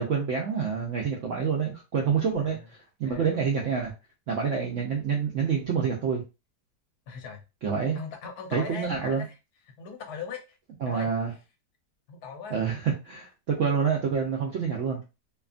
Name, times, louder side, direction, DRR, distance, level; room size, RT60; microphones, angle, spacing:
voice 1, 0.0-2.6 3.0-3.9 4.3-6.2 7.6-8.0 8.5-9.2 10.8-11.3 12.5-15.0, right 6 dB, 70° right, -1 dB, 0.7 m, -27 dB
voice 2, 2.4-2.7 3.0-3.3 7.1-7.4 7.9-9.4 9.7-10.6 10.9-11.1 12.1-12.6, left 6 dB, 70° left, 4 dB, 1.0 m, -40 dB
2.8 x 2.3 x 2.4 m, 0.28 s
omnidirectional pair, 1.8 m